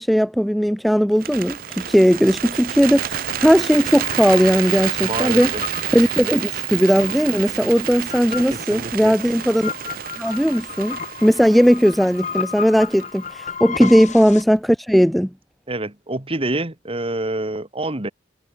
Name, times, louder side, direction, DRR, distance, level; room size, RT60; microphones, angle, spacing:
voice 1, 0.0-5.5 5.9-9.7 10.2-15.3, equal, ahead, 0.4 m, -17 dB
Bird, 1.1-13.3, right 10 dB, 55° right, 0.6 m, -29 dB
sound 1, 3.6-14.4, left 6 dB, 45° left, 1.4 m, -34 dB
voice 2, 5.0-5.6 8.5-9.2 13.8-13.9 15.7-18.1, right 2 dB, 35° right, 2.2 m, -27 dB
head